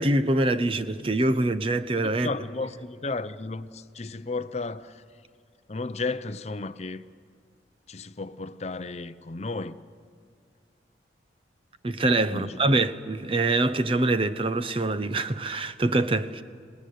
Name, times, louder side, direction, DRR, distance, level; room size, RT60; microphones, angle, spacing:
voice 1, 0.0-2.3 11.8-16.4, right 2 dB, 30° right, 0.7 m, -24 dB
voice 2, 2.2-5.0 5.7-7.0 7.9-9.8 12.3-12.7, left 3 dB, 35° left, 0.6 m, -33 dB
27.0 x 18.5 x 9.3 m
head